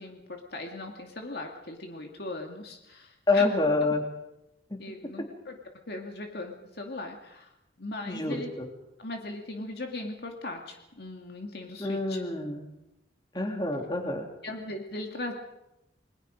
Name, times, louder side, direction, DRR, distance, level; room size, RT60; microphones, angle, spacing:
voice 1, 0.0-3.7 4.8-5.6 5.9-7.5 7.8-8.5 9.0-12.2 14.4-15.3, left 2 dB, 60° left, 2 dB, 2.4 m, -39 dB
voice 2, 3.3-4.0 4.7-4.8 8.1-8.6 11.8-12.6 13.3-14.2, left 2 dB, 25° left, 2 dB, 3.2 m, -27 dB
29.5 x 21.0 x 5.2 m, 0.88 s
head